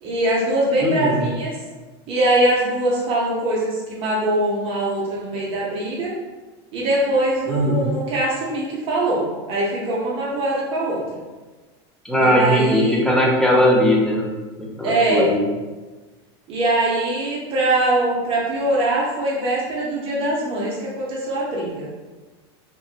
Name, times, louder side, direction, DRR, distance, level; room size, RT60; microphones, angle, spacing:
voice 1, 0.0-1.6 2.1-6.1 6.7-11.2 12.2-13.0 14.8-15.3 16.5-21.9, right 1 dB, 45° right, -4 dB, 0.6 m, -22 dB
voice 2, 0.8-1.2 7.5-7.9 12.0-14.3 14.6-15.4, equal, 5° left, -3 dB, 0.5 m, -19 dB
2.9 x 2.4 x 2.4 m, 1.2 s
supercardioid pair, 135°, 14 cm